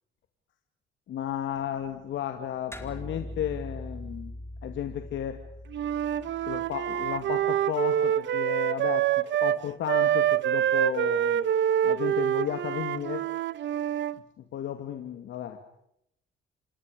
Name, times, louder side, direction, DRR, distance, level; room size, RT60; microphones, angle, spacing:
voice 1, 1.1-4.3 4.6-5.4 6.2-9.1 9.4-11.4 11.8-13.3 14.4-15.6, left 10 dB, 75° left, 6 dB, 2.5 m, -34 dB
sound 1, 2.7-7.5, left 1 dB, 10° left, 4.4 m, -42 dB
Wind instrument woodwind instrument, 5.7-9.6 9.9-14.2, right 10 dB, 70° right, 1.1 m, -26 dB
29.5 x 26.0 x 5.2 m, 0.75 s
cardioid pair, 90°, 20 cm